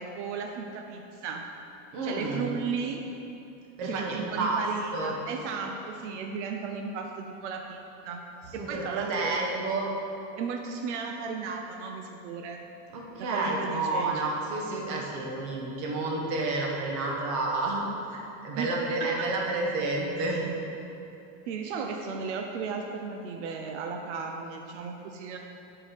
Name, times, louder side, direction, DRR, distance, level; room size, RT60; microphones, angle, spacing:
voice 1, 0.0-1.4 2.0-3.0 3.8-8.2 8.7-9.7 10.4-12.6 13.2-14.3 18.5-18.7 20.2-20.3 21.5-25.4, right 5 dB, 85° right, 3 dB, 0.7 m, -35 dB
voice 2, 1.9-2.5 3.8-4.6 4.9-5.1 8.6-9.9 12.9-17.8 18.1-20.4, right 2 dB, 45° right, -2 dB, 1.3 m, -30 dB
8.4 x 4.7 x 5.0 m, 2.9 s
supercardioid pair, 175°, 34 cm